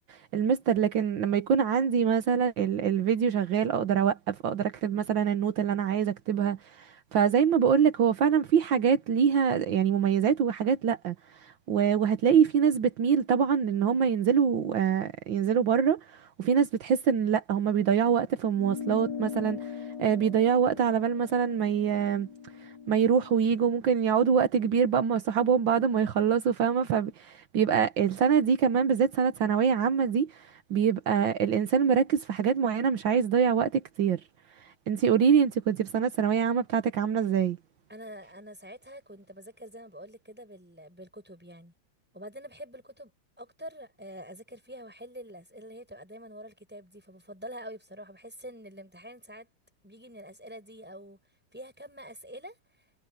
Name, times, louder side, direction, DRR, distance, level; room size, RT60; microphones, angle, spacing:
voice 1, 0.1-11.2 11.4-19.7 20.0-22.3 22.6-34.2 34.9-37.6, right 7 dB, 75° right, 1.9 m, -25 dB
sound 1, 18.6-23.4, left 7 dB, 65° left, 3.5 m, -40 dB
voice 2, 37.9-41.7 42.1-43.1 43.4-49.5 49.8-51.2 51.5-52.6, equal, 5° right, 7.0 m, -45 dB
omnidirectional pair, 2.1 m